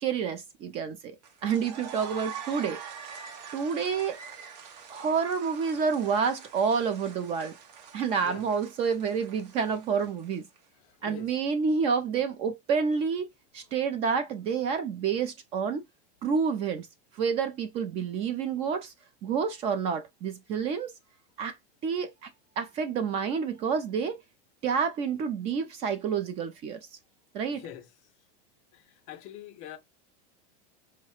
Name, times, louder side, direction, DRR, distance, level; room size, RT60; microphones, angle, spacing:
voice 1, 0.0-1.2 1.4-2.8 3.5-4.2 4.9-7.5 7.9-10.4 11.0-13.3 13.5-15.8 16.2-16.9 17.2-18.9 19.2-20.9 21.4-21.6 21.8-22.3 22.6-24.2 24.6-26.8 27.3-27.7, right 6 dB, 30° right, 0.4 m, -28 dB
sound 1, 1.2-10.6, right 7 dB, 75° right, 0.8 m, -45 dB
voice 2, 10.8-11.3 27.5-27.9 28.7-29.8, left 11 dB, 35° left, 0.4 m, -44 dB
4.6 x 2.2 x 2.9 m
supercardioid pair, 170°, 21 cm